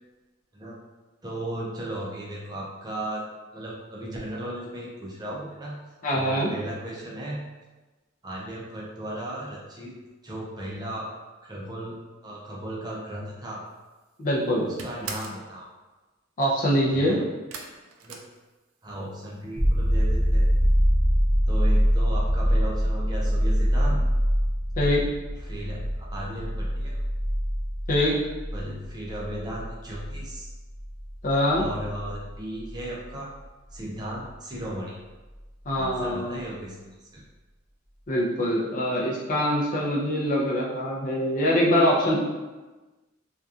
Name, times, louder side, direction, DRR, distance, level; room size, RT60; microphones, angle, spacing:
voice 1, 1.2-3.3 3.5-5.8 6.1-7.4 8.2-9.9 10.2-11.1 11.4-12.0 12.2-13.6 14.6-15.7 16.9-17.2 18.0-18.2 18.8-20.5 21.5-24.0 25.3-25.8 26.1-27.0 28.5-30.5 31.6-33.3 33.7-35.0 35.8-37.2, right 1 dB, 20° right, -4 dB, 0.5 m, -36 dB
voice 2, 6.0-6.5 14.2-14.7 16.4-17.2 24.8-25.0 27.9-28.2 31.2-31.7 35.7-36.4 38.1-42.2, equal, 40° left, -3 dB, 0.5 m, -23 dB
sound 1, 13.8-14.2 14.4-15.5 17.5-19.0 19.3-19.9 20.2-20.3 20.6-20.7, right 4 dB, 85° right, 0.4 m, -40 dB
sound 2, 19.6-33.1 35.8-35.9, equal, 5° left, 0.8 m, -24 dB
2.7 x 2.3 x 2.4 m, 1.2 s
head